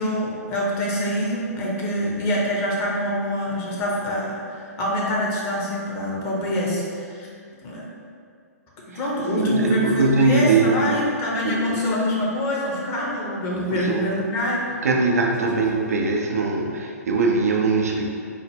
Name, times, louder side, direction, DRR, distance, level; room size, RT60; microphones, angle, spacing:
voice 1, 0.0-7.3 7.6-7.9 8.9-14.6, equal, 30° left, -4 dB, 0.8 m, -25 dB
voice 2, 8.9-11.0 11.4-11.8 13.7-14.1 14.8-18.0, right 3 dB, 65° right, 1 dB, 0.4 m, -22 dB
4.0 x 2.0 x 3.4 m, 2.3 s
figure-of-eight pair, 115°, 9 cm